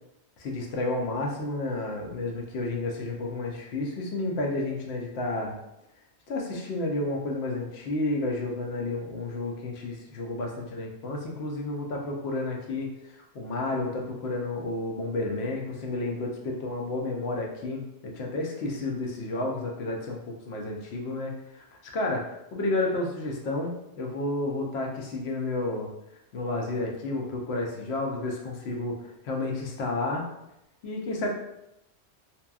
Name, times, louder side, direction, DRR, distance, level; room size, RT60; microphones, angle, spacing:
voice 1, 0.4-5.6 6.3-21.6 21.9-25.9 26.3-30.2 30.8-31.3, left 2 dB, 70° left, 0 dB, 0.8 m, -31 dB
2.8 x 2.2 x 2.3 m, 0.85 s
omnidirectional pair, 1.2 m